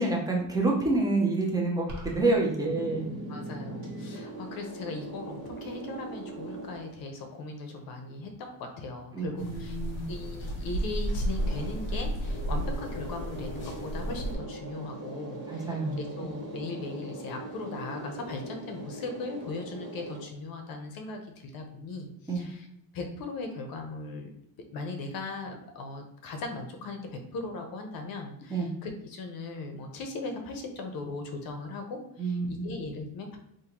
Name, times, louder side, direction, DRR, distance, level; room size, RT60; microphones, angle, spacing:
voice 1, 0.0-3.0 9.1-10.1 15.5-16.0 22.3-22.4 28.5-28.7 32.2-32.7, right 2 dB, 10° right, -1 dB, 0.4 m, -28 dB
sound 1, 1.9-2.4, right 1 dB, 50° right, 1.2 m, -39 dB
sound 2, 2.7-7.3 11.0-20.2, right 1 dB, 30° right, 1.1 m, -41 dB
voice 2, 3.3-9.8 10.1-22.7 22.9-24.3 24.7-33.4, left 3 dB, 50° left, 4 dB, 0.7 m, -38 dB
sound 3, 9.4-14.3, right 1 dB, 25° left, 0.9 m, -33 dB
3.7 x 2.6 x 2.9 m, 0.78 s
cardioid pair, 150°, 47 cm